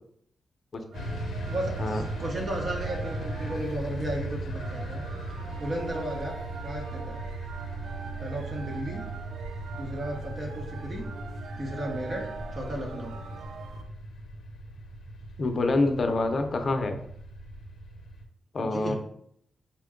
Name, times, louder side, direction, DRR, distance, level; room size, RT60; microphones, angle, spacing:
sound 1, 0.9-18.2, right 1 dB, 85° left, 0.7 m, -38 dB
sound 2, 0.9-13.8, right 3 dB, 75° right, 0.4 m, -42 dB
voice 1, 1.5-5.0 5.6-6.4 6.6-7.2 8.2-9.0 9.7-11.0 11.6-12.2 12.5-13.1 18.6-18.9, right 1 dB, 45° right, -1 dB, 0.9 m, -34 dB
voice 2, 15.4-17.0 18.5-18.9, left 2 dB, 50° left, 6 dB, 0.5 m, -26 dB
4.1 x 2.2 x 3.6 m, 0.69 s
cardioid pair, 95°, 0 cm